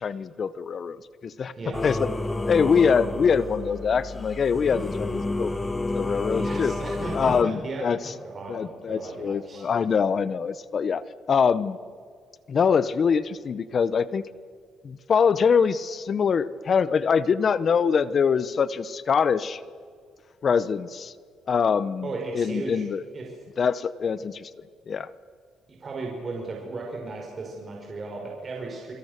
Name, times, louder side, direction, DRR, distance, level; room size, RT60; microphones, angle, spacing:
voice 1, 0.0-1.5 1.8-2.1 2.4-5.5 5.9-6.7 7.1-8.1 8.5-11.8 12.5-14.3 14.8-19.6 20.4-21.1 21.5-23.0 23.6-24.5 24.9-25.1, left 6 dB, 50° left, 17 dB, 0.8 m, -24 dB
Singing / Musical instrument, 1.7-7.4, left 2 dB, 20° left, 1.5 m, -30 dB
voice 2, 6.3-9.7 22.0-22.8 23.1-23.3 25.7-28.9, right 3 dB, 40° right, 0 dB, 5.3 m, -35 dB
29.5 x 23.5 x 6.7 m, 2.1 s
cardioid pair, 90°, 0 cm